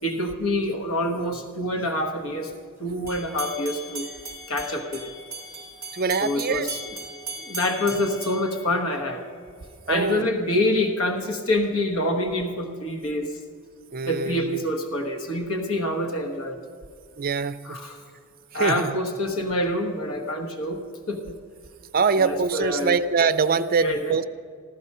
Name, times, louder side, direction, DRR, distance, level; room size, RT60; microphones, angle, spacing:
voice 1, 0.0-2.5 2.8-4.1 4.5-5.1 6.2-6.8 7.4-9.2 9.9-13.3 14.1-16.6 17.6-18.0 18.5-20.8 21.1-21.4 22.1-23.0 23.8-24.2, left 1 dB, 70° left, 4 dB, 1.2 m, -26 dB
sound 1, 3.1-9.3, right 2 dB, 10° right, 3.2 m, -38 dB
voice 2, 5.9-6.7 9.9-10.3 13.9-14.7 17.2-17.8 18.5-18.9 21.9-24.2, right 5 dB, 45° right, 13 dB, 0.5 m, -24 dB
15.0 x 12.5 x 5.4 m, 2.1 s
head